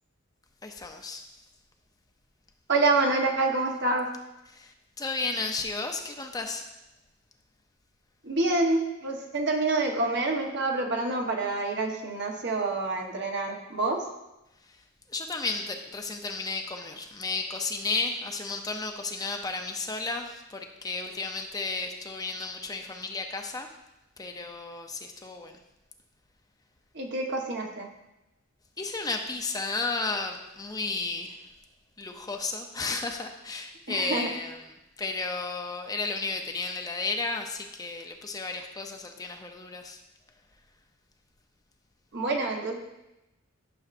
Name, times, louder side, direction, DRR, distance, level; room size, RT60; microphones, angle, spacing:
voice 1, 0.6-1.2 4.5-6.7 14.6-14.8 15.1-23.7 24.2-25.6 28.8-31.4 32.0-40.0, left 3 dB, 20° left, 4 dB, 0.5 m, -33 dB
voice 2, 2.7-4.1 8.2-14.0 26.9-27.9 33.9-34.3 42.1-42.7, right 2 dB, 55° right, 2 dB, 1.1 m, -27 dB
11.5 x 6.4 x 2.5 m, 0.94 s
head